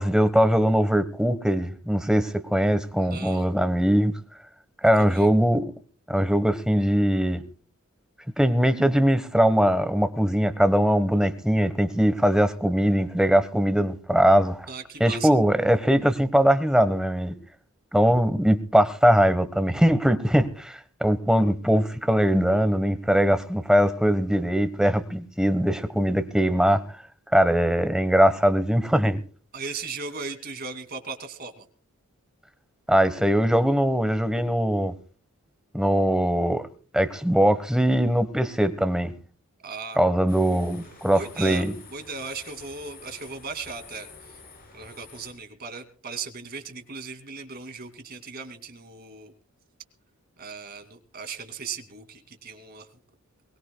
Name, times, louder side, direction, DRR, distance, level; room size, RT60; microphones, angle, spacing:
voice 1, 0.0-4.1 4.8-5.7 6.1-7.4 8.4-14.7 15.0-17.3 17.9-26.8 27.3-29.2 32.9-34.9 35.7-36.7 36.9-39.1 40.0-41.7, equal, 5° right, 1.1 m, -21 dB
voice 2, 3.0-3.5 5.0-5.3 14.7-15.3 29.5-31.6 39.6-40.0 40.8-41.6 41.9-44.4 44.7-49.3 50.4-52.9, right 4 dB, 45° right, 2.4 m, -37 dB
sound 1, 40.3-45.3, left 4 dB, 45° left, 5.5 m, -48 dB
22.5 x 20.0 x 2.2 m
head